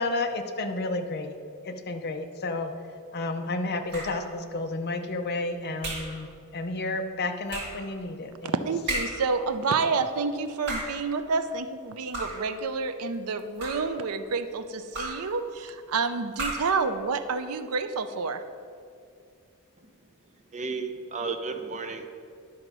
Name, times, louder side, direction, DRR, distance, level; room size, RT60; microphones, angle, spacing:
voice 1, 0.0-1.3 1.6-2.7 3.1-6.3 6.5-8.6, left 2 dB, 45° left, 6 dB, 0.6 m, -31 dB
sound 1, 3.9-4.3 5.8-6.2 7.5-7.9 8.9-9.3 10.5-11.1 12.1-12.5 13.4-14.0 14.9-15.3 16.3-16.8, right 1 dB, 55° right, 2.1 m, -34 dB
voice 2, 8.6-18.4, right 4 dB, 75° right, 9 dB, 0.5 m, -29 dB
voice 3, 19.8-22.1, right 4 dB, 35° right, 6 dB, 0.6 m, -34 dB
11.0 x 3.8 x 6.1 m, 2.4 s
head